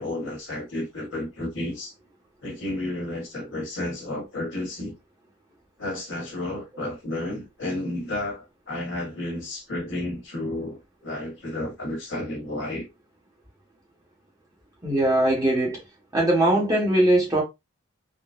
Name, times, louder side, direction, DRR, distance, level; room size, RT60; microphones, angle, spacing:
voice 1, 0.0-1.9 2.4-4.9 5.8-12.9, left 1 dB, 60° left, 1.3 m, -32 dB
voice 2, 14.8-15.8 16.1-17.4, right 1 dB, 15° right, 1.0 m, -20 dB
3.7 x 2.0 x 2.4 m
head